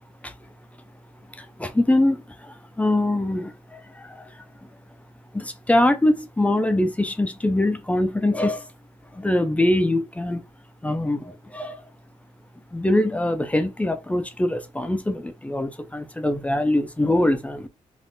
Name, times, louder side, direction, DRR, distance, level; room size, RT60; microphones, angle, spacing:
voice 1, 1.3-4.7 5.3-8.7 9.1-10.4 10.8-11.8 12.7-17.7, left 1 dB, 10° left, 0.4 m, -23 dB
3.5 x 2.4 x 2.6 m
cardioid pair, 100°, 13 cm